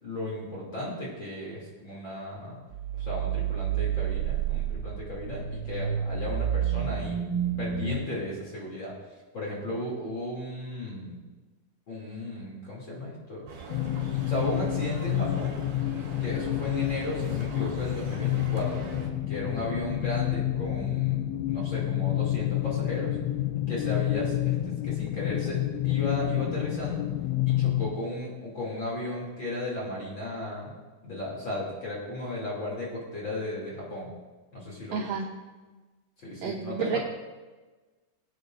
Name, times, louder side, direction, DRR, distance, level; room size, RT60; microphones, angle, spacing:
voice 1, 0.0-2.6 2.9-7.2 7.6-8.9 9.3-11.2 11.9-13.5 14.2-15.6 16.2-18.8 19.3-21.2 21.5-23.2 23.7-25.6 25.8-27.1 27.5-30.7 31.0-34.1 34.5-35.0 36.2-37.0, left 1 dB, 30° left, -5 dB, 2.8 m, -35 dB
sound 1, 2.7-8.0, right 9 dB, 35° right, 1.8 m, -30 dB
sound 2, 13.5-19.1, right 4 dB, 55° right, 3.5 m, -43 dB
sound 3, 13.7-28.0, left 14 dB, 90° left, 2.9 m, -29 dB
voice 2, 34.9-35.4 36.4-37.0, right 5 dB, 85° right, 1 dB, 2.0 m, -30 dB
22.0 x 8.7 x 2.6 m, 1.3 s
omnidirectional pair, 4.9 m